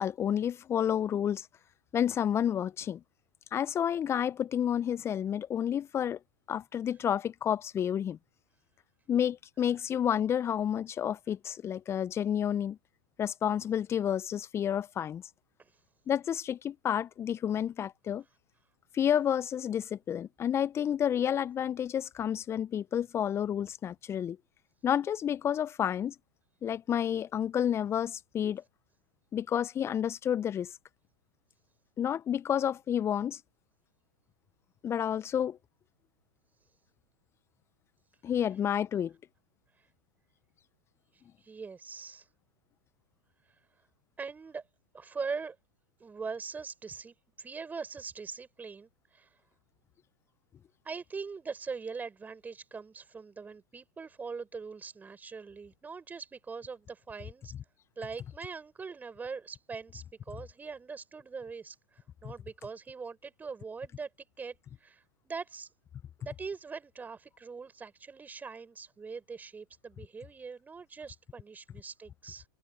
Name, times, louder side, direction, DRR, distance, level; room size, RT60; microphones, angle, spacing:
voice 1, 0.0-1.5 1.9-3.0 3.5-6.2 6.5-8.2 9.1-12.8 13.2-15.2 16.1-18.2 18.9-24.4 24.8-26.1 26.6-28.6 29.3-30.7 32.0-33.4 34.8-35.6 38.2-39.1 62.2-62.3, left 9 dB, 25° left, 0.8 m, -30 dB
voice 2, 41.4-42.3 44.2-44.6 44.9-45.6 46.0-49.3 50.8-57.5 58.0-64.1 64.4-65.7 66.2-72.4, right 5 dB, 15° right, 6.3 m, -42 dB
figure-of-eight pair, 100°, 11 cm